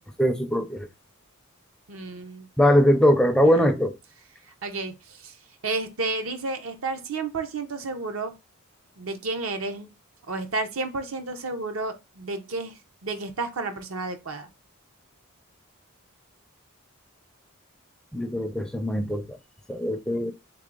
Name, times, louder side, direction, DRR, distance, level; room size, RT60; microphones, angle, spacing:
voice 1, 0.2-0.9 2.6-3.9 18.1-19.4 19.7-20.3, equal, 5° left, 0.4 m, -21 dB
voice 2, 1.9-2.5 3.4-3.5 4.6-5.3 5.6-8.3 9.0-9.9 10.3-12.7 13.0-14.5, right 3 dB, 65° right, 0.7 m, -31 dB
3.5 x 3.4 x 3.7 m
head